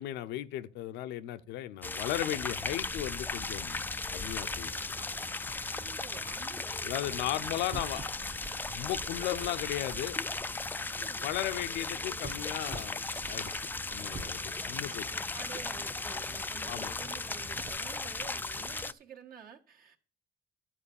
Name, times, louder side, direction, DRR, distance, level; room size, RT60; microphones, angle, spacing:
voice 1, 0.0-3.9 4.1-4.8 6.8-8.1 8.7-10.2 11.2-13.0 13.3-13.5 13.9-15.1 16.7-16.9, left 13 dB, 90° left, 0.7 m, -36 dB
sound 1, 1.8-18.9, left 3 dB, 10° left, 0.3 m, -36 dB
Dog, 3.9-17.7, right 4 dB, 35° right, 1.1 m, -50 dB
voice 2, 5.7-7.7 10.9-11.3 14.7-20.0, right 7 dB, 60° right, 1.6 m, -50 dB
11.5 x 4.6 x 7.0 m
cardioid pair, 110°, 17 cm